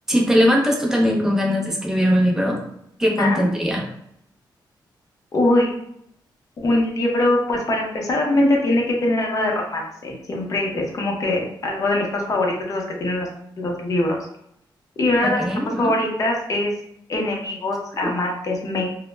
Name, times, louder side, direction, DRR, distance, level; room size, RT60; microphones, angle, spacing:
voice 1, 0.1-2.6 3.0-3.8 15.2-15.9, equal, 5° right, -1 dB, 0.5 m, -20 dB
voice 2, 5.3-5.7 6.6-13.3 13.6-14.2 15.0-15.4 15.8-16.7 17.1-19.0, left 1 dB, 45° left, 0 dB, 0.6 m, -22 dB
2.0 x 2.0 x 3.2 m, 0.74 s
wide cardioid pair, 140°, 8 cm